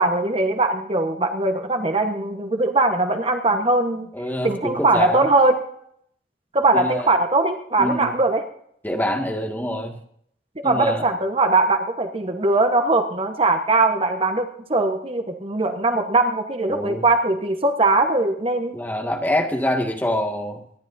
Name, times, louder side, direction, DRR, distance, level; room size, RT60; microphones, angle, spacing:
voice 1, 0.0-4.1 4.4-5.6 6.5-8.4 10.6-18.7, right 2 dB, 35° right, 5 dB, 1.2 m, -20 dB
voice 2, 4.1-5.3 6.7-7.1 7.8-8.1 8.8-10.0 10.6-11.1 16.7-17.0 18.7-20.6, left 1 dB, 10° left, 2 dB, 2.0 m, -25 dB
25.0 x 11.0 x 2.7 m, 0.68 s
head